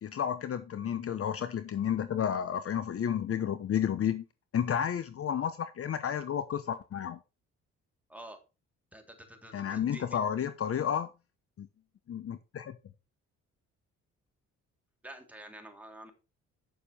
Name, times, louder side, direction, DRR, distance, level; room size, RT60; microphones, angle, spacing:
voice 1, 0.0-4.2 4.5-7.2 9.5-11.1 11.6-11.7 12.1-12.8, left 8 dB, 50° left, 12 dB, 0.9 m, -31 dB
voice 2, 8.9-10.2 15.0-16.1, right 1 dB, 5° right, 3 dB, 3.2 m, -48 dB
9.2 x 7.0 x 4.3 m, 0.29 s
cardioid pair, 90°, 30 cm